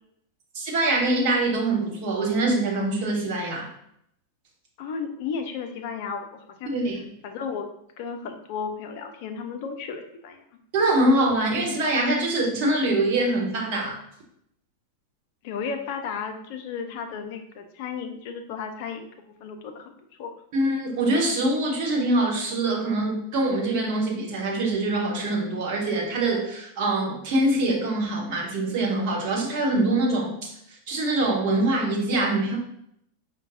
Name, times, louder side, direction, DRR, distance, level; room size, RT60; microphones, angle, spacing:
voice 1, 0.5-3.7 6.7-7.0 10.7-14.0 20.5-30.5 30.9-32.6, right 2 dB, 45° right, -1 dB, 1.0 m, -24 dB
voice 2, 4.8-6.7 7.2-7.7 8.0-10.4 15.4-19.1 19.4-19.9 20.2-20.3, left 6 dB, 50° left, 6 dB, 0.4 m, -34 dB
5.1 x 2.1 x 2.6 m, 0.75 s
figure-of-eight pair, 90°, 0 cm